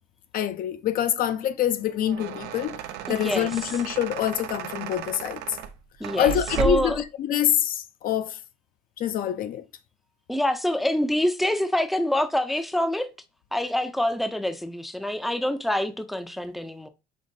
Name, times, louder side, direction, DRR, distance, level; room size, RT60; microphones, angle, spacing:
voice 1, 0.3-2.8 3.1-5.6 6.2-8.4 9.0-9.7, left 10 dB, 60° left, 0.4 m, -26 dB
sound 1, 1.8-7.0, right 8 dB, 90° right, 0.5 m, -34 dB
voice 2, 3.1-3.5 6.0-7.0 10.3-13.1 13.5-16.9, left 1 dB, ahead, 0.4 m, -26 dB
5.3 x 3.1 x 2.6 m
cardioid pair, 110°, 17 cm